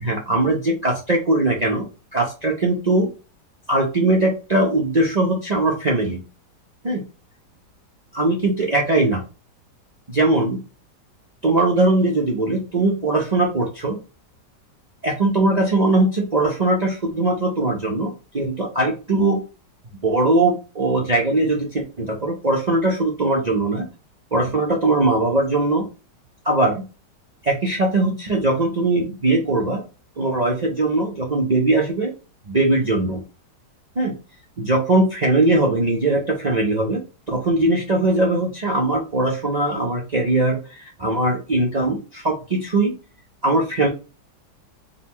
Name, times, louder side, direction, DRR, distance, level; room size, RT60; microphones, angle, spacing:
voice 1, 0.0-1.9 2.1-3.1 3.7-6.2 6.8-7.0 8.1-9.2 10.1-10.6 11.4-14.0 15.0-19.4 20.0-23.9 24.3-25.8 26.4-26.8 27.4-29.8 30.2-32.1 32.5-33.2 34.0-34.1 34.6-37.0 37.3-42.9 43.4-43.9, right 2 dB, 60° right, -1 dB, 0.4 m, -20 dB
4.1 x 2.3 x 4.2 m, 0.32 s
omnidirectional pair, 1.9 m